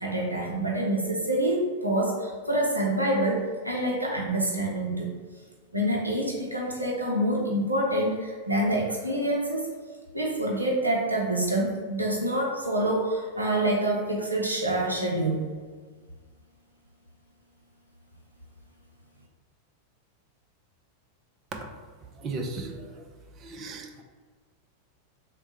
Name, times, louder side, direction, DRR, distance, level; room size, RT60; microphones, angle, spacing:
voice 1, 0.0-5.1 5.7-9.7 10.1-15.5, right 1 dB, 85° right, -2 dB, 0.6 m, -26 dB
voice 2, 22.1-23.1 23.4-24.0, right 3 dB, 30° right, 3 dB, 0.5 m, -36 dB
3.5 x 2.2 x 4.1 m, 1.5 s
figure-of-eight pair, 90°, 0 cm